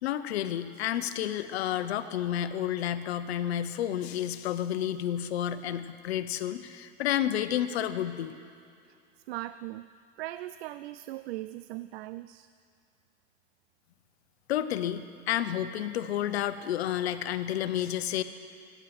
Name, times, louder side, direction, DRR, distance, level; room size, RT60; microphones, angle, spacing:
voice 1, 0.0-8.4 14.5-18.2, left 11 dB, 90° left, 12 dB, 0.9 m, -30 dB
voice 2, 9.3-9.9 10.2-12.5, right 16 dB, 75° right, 13 dB, 0.5 m, -39 dB
15.5 x 10.5 x 7.9 m, 2.4 s
supercardioid pair, 130°, 31 cm